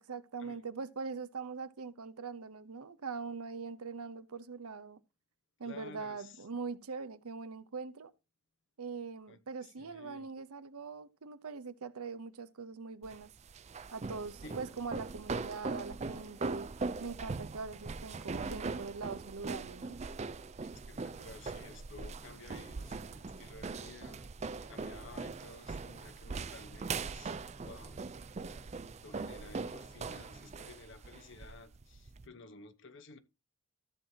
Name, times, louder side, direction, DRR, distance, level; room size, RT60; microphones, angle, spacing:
voice 1, 0.0-5.0 5.6-8.1 8.8-13.3 13.9-16.7 17.0-20.0, right 4 dB, 85° right, 0.7 m, -42 dB
voice 2, 5.6-6.5 9.3-10.3 14.4-14.6 20.7-24.2 24.6-27.3 27.6-28.0 29.0-33.2, left 3 dB, 55° left, 0.9 m, -53 dB
sound 1, 13.0-32.3, right 4 dB, 30° right, 0.4 m, -41 dB
sound 2, 20.6-30.6, right 1 dB, 10° left, 1.3 m, -59 dB
14.0 x 7.4 x 2.8 m
head